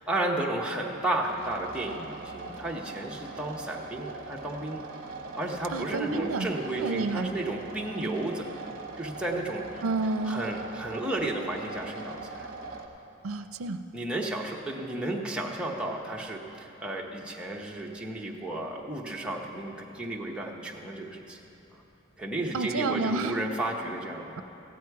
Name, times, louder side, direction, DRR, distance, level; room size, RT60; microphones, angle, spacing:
voice 1, 0.0-4.9 5.4-8.5 9.0-9.6 10.2-12.5 13.9-21.4 22.2-24.4, right 1 dB, 5° right, -2 dB, 0.9 m, -33 dB
sound 1, 1.2-12.9, right 3 dB, 45° right, 1.1 m, -41 dB
voice 2, 5.7-6.5 6.8-7.3 9.8-10.4 13.2-13.8 22.5-23.4, right 3 dB, 85° right, 9 dB, 0.5 m, -29 dB
15.0 x 9.4 x 4.7 m, 2.9 s
head